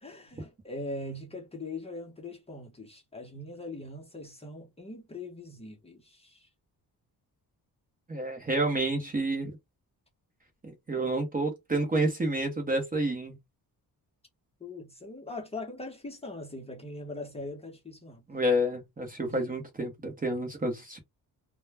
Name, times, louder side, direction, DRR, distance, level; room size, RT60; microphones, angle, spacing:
voice 1, 0.0-6.5 14.6-18.2 19.2-19.6, left 2 dB, 15° left, 0.7 m, -41 dB
voice 2, 8.1-9.5 10.6-13.4 18.3-21.0, right 1 dB, 20° right, 0.7 m, -29 dB
2.2 x 2.1 x 3.3 m
cardioid pair, 125°, 39 cm